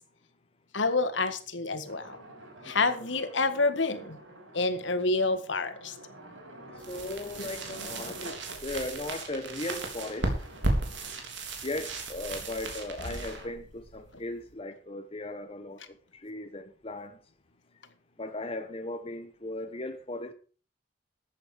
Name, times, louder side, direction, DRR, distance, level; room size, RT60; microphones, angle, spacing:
voice 1, 0.7-2.2 2.6-4.2 4.5-6.0 7.4-7.5, left 3 dB, 75° left, 1.8 m, -28 dB
sound 1, 1.8-8.7 9.5-11.1, right 1 dB, 90° right, 6.7 m, -49 dB
voice 2, 6.7-10.3 11.6-17.2 18.2-20.3, left 2 dB, 30° left, 1.1 m, -37 dB
sound 2, 6.8-14.5, right 2 dB, 70° right, 3.5 m, -35 dB
14.0 x 9.3 x 5.0 m
head